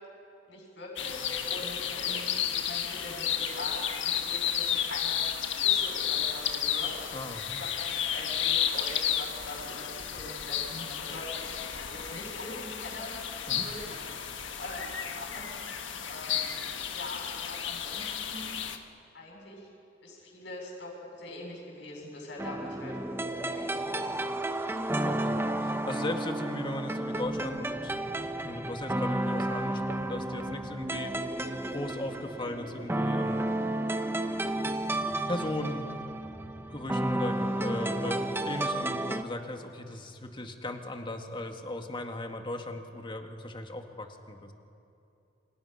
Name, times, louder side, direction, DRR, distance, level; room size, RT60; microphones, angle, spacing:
voice 1, 0.5-5.2 5.5-7.0 7.6-13.1 13.4-16.5 16.9-18.6 19.1-19.7 20.0-23.0 23.4-24.1, left 1 dB, 70° left, -4 dB, 7.5 m, -43 dB
sound 1, 1.0-18.8, left 9 dB, 85° left, 1.5 m, -32 dB
voice 2, 7.1-7.6 13.5-13.7 25.0-27.9 28.4-31.2 31.7-33.5 34.9-35.9 36.7-44.5, left 1 dB, 25° left, 4 dB, 1.9 m, -37 dB
sound 2, 22.4-39.2, right 1 dB, 15° right, 0.9 m, -32 dB
28.0 x 26.5 x 5.8 m, 2.6 s
head